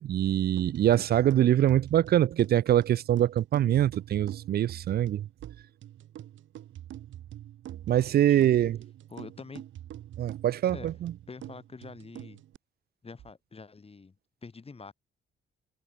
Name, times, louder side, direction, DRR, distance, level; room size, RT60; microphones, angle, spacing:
voice 1, 0.0-5.3 7.9-8.8 10.2-11.1, right 11 dB, 55° right, 0.4 m, -24 dB
sound 1, 0.6-12.6, right 12 dB, 75° right, 2.0 m, -45 dB
voice 2, 8.1-8.5 9.1-9.6 10.7-10.9 11.3-12.4 13.0-14.2 14.4-14.9, left 4 dB, 30° left, 5.7 m, -45 dB
cardioid pair, 90°, 20 cm